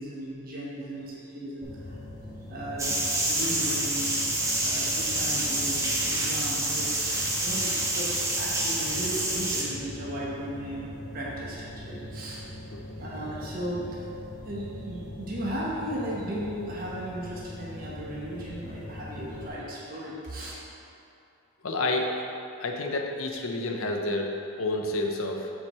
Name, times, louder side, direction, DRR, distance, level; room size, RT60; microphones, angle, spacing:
voice 1, 0.0-1.9 2.5-4.2 4.6-12.5 13.0-20.5, right 1 dB, 40° right, -5 dB, 1.1 m, -36 dB
sound 1, 1.6-19.5, left 1 dB, 5° left, 1.7 m, -42 dB
sound 2, 2.8-9.6, right 1 dB, 15° right, 0.7 m, -27 dB
voice 2, 21.6-22.1 22.6-25.5, left 2 dB, 70° left, 2 dB, 0.7 m, -29 dB
7.6 x 4.9 x 4.3 m, 2.7 s
head